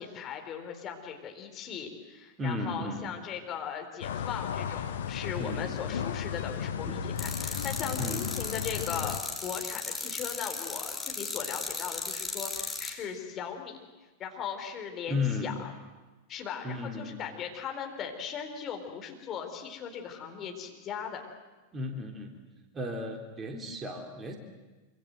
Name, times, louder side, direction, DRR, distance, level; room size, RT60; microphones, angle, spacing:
voice 1, 0.0-13.8 14.2-15.7 16.3-21.2, left 8 dB, 30° left, 3 dB, 4.2 m, -38 dB
voice 2, 2.4-3.1 5.4-5.7 6.9-7.0 8.0-8.2 15.1-15.5 16.6-17.2 21.7-22.4 22.7-24.4, left 2 dB, 20° right, 3 dB, 3.4 m, -34 dB
sound 1, 4.0-9.2, left 8 dB, 60° left, 1.3 m, -34 dB
sound 2, 7.2-12.9, left 3 dB, 10° left, 3.8 m, -36 dB
26.0 x 25.5 x 7.9 m, 1.2 s
figure-of-eight pair, 90°, 0 cm